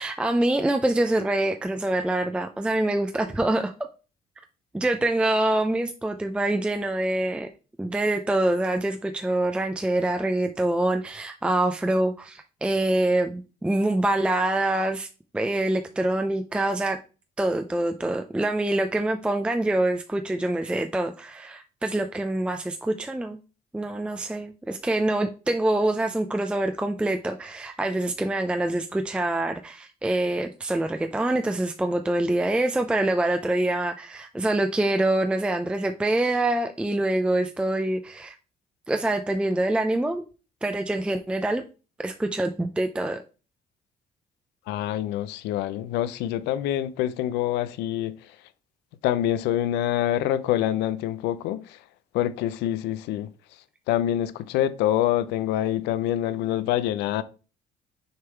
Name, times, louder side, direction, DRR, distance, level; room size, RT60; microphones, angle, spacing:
voice 1, 0.0-3.7 4.7-7.5 7.8-15.1 15.3-17.0 17.4-23.4 23.7-38.4 38.9-40.2 40.6-41.6 42.0-43.2, right 1 dB, 5° right, 0.4 m, -25 dB
voice 2, 44.7-48.3 49.0-51.8 52.1-53.3 53.9-57.2, left 12 dB, 90° left, 0.5 m, -26 dB
6.6 x 3.5 x 4.5 m
cardioid pair, 110°, 17 cm